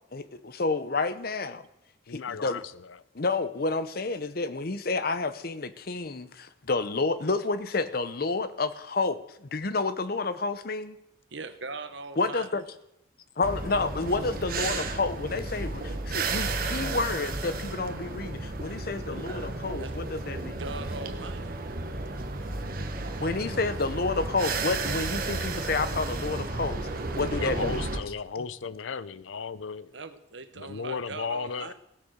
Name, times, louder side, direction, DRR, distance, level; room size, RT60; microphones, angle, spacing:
voice 1, 0.1-1.7 2.1-2.6 3.1-11.0 12.2-12.6 13.4-20.6 23.2-27.8, left 3 dB, 50° left, 13 dB, 0.8 m, -30 dB
voice 2, 2.1-3.0 27.2-30.0 30.5-31.7, left 5 dB, 85° left, 17 dB, 0.6 m, -35 dB
voice 3, 11.3-12.5 19.8-20.0 20.6-21.7 29.9-31.7, right 3 dB, 70° right, 10 dB, 1.1 m, -40 dB
sound 1, 13.4-28.0, right 3 dB, 50° right, 1.2 m, -33 dB
16.5 x 8.4 x 6.6 m, 0.83 s
head